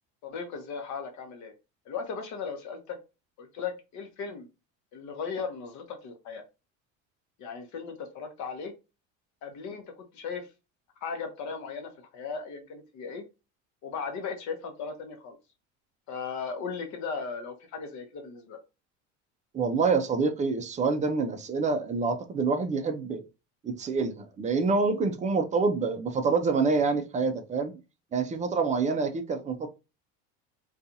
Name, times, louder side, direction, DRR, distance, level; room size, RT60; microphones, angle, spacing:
voice 1, 0.2-1.5 1.9-3.0 3.4-4.5 4.9-6.4 7.4-8.7 9.4-9.8 10.1-10.5 11.0-13.2 13.8-15.4 16.1-18.6, left 5 dB, 50° left, 0.8 m, -37 dB
voice 2, 19.5-23.2 23.6-27.7 28.1-29.7, right 4 dB, 20° right, 0.3 m, -27 dB
2.6 x 2.3 x 2.5 m
supercardioid pair, 100°, 37 cm